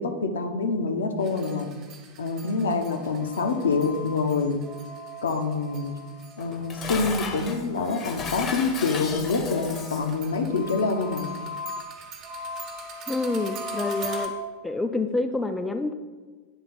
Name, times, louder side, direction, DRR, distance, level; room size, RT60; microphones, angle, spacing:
voice 1, 0.0-1.7 2.2-4.6 5.2-5.9 6.4-11.3, left 4 dB, 65° left, 5 dB, 0.7 m, -26 dB
sound 1, 1.2-7.5 7.9-14.3, left 1 dB, 35° right, 1.2 m, -38 dB
Dishes pots and pans, 6.4-10.2, left 5 dB, 30° left, 0.8 m, -34 dB
voice 2, 13.1-14.3 14.6-15.9, left 2 dB, 10° left, 7 dB, 0.4 m, -27 dB
9.0 x 3.7 x 4.1 m, 1.4 s
figure-of-eight pair, 90°, 0 cm